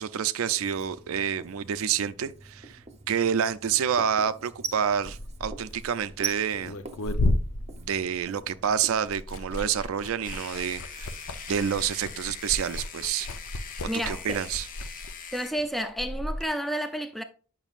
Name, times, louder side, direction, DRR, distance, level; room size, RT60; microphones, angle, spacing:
voice 1, 0.0-6.8 7.8-11.2 11.5-13.3 13.8-14.7, right 8 dB, 75° right, 0.4 m, -28 dB
Writing, 0.6-9.0, right 5 dB, 30° right, 0.7 m, -42 dB
Liquid, 4.9-8.6 8.9-16.5, left 2 dB, 80° left, 0.6 m, -33 dB
sound 1, 10.2-15.5, left 6 dB, 40° left, 0.6 m, -42 dB
voice 2, 13.9-14.4 15.3-17.2, equal, ahead, 0.3 m, -31 dB
8.9 x 5.9 x 2.4 m
head